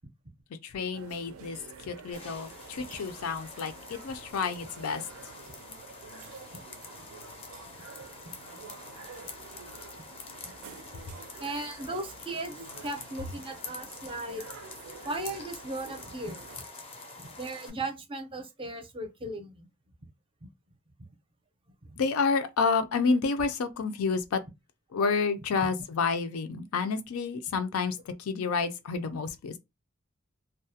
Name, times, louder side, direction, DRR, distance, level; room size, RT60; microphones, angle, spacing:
voice 1, 0.6-5.1 11.1-11.2 22.0-24.4 24.9-29.6, left 4 dB, 85° left, 0.4 m, -29 dB
sound 1, 0.9-16.6, right 5 dB, 80° right, 0.4 m, -49 dB
sound 2, 2.1-17.7, left 3 dB, 25° left, 0.4 m, -46 dB
voice 2, 11.4-14.4 15.0-16.4 17.2-19.7, right 2 dB, 25° right, 0.5 m, -37 dB
2.3 x 2.0 x 2.7 m
head